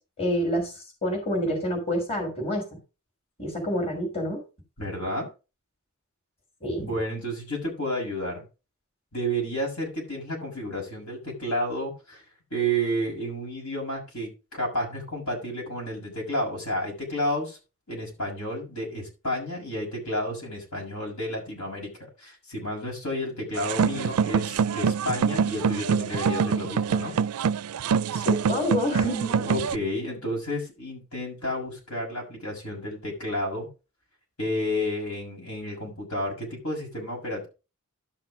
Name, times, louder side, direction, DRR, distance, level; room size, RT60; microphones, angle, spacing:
voice 1, 0.2-2.8 3.4-4.4 6.6-6.9 28.1-29.5, equal, 30° left, 1 dB, 3.6 m, -28 dB
voice 2, 4.8-5.3 6.8-8.4 9.1-12.2 12.5-17.6 17.9-21.9 22.2-27.1 29.4-33.7 34.4-37.5, equal, 80° left, -1 dB, 6.4 m, -31 dB
sound 1, 23.6-29.7, right 6 dB, 80° right, 0.4 m, -25 dB
12.0 x 5.9 x 5.0 m, 0.30 s
head